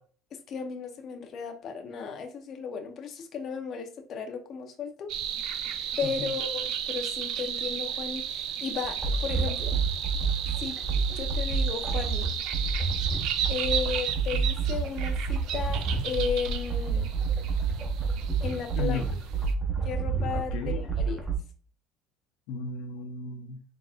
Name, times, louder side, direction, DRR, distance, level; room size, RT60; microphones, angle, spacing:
voice 1, 0.5-5.1 6.0-9.8 10.6-10.7 11.1-12.3 13.5-17.1 18.4-19.0 19.8-21.2, left 6 dB, 45° left, 4 dB, 0.7 m, -35 dB
sound 1, 5.1-19.5, right 9 dB, 65° right, 0.5 m, -34 dB
sound 2, 9.0-21.3, right 5 dB, 10° right, 0.8 m, -29 dB
voice 2, 18.7-19.2 20.3-20.8 22.5-23.6, left 4 dB, 85° left, 4 dB, 0.6 m, -35 dB
4.0 x 3.6 x 2.4 m, 0.43 s
cardioid pair, 140°, 0 cm